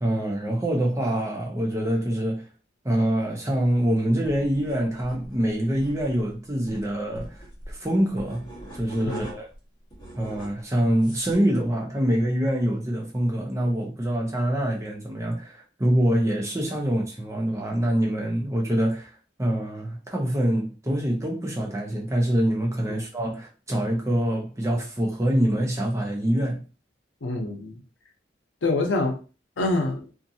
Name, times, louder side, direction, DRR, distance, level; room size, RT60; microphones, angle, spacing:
voice 1, 0.0-2.5 2.8-7.4 7.7-9.5 10.1-19.1 19.4-26.6, right 1 dB, 15° right, 0.6 m, -25 dB
sound 1, 4.2-9.6 9.9-11.4, right 1 dB, 25° left, 1.1 m, -42 dB
voice 2, 27.2-27.8 28.6-29.2 29.6-30.1, left 2 dB, 85° left, 0.7 m, -26 dB
2.5 x 2.5 x 2.7 m
head